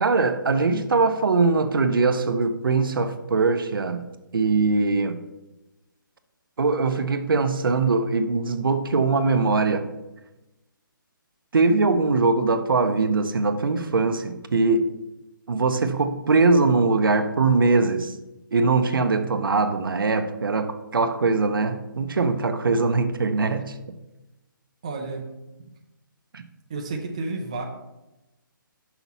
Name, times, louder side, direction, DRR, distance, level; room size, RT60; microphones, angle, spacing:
voice 1, 0.0-4.0 4.3-5.2 6.6-9.9 11.5-14.8 15.5-18.1 18.5-23.7 26.3-26.4, right 3 dB, 75° right, 8 dB, 0.7 m, -21 dB
voice 2, 24.8-25.2 26.7-27.6, right 3 dB, 15° right, 0 dB, 0.4 m, -31 dB
5.9 x 5.8 x 4.1 m, 0.98 s
hypercardioid pair, 175°, 11 cm